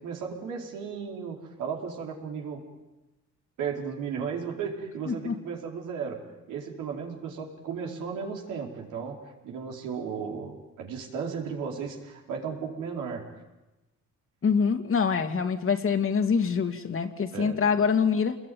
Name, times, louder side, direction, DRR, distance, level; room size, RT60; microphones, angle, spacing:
voice 1, 0.0-2.6 3.6-13.3 17.3-17.7, right 6 dB, 90° right, 1 dB, 4.7 m, -35 dB
voice 2, 14.4-18.4, left 6 dB, 45° left, 6 dB, 2.6 m, -25 dB
27.0 x 21.5 x 9.6 m, 1.1 s
cardioid pair, 90°, 30 cm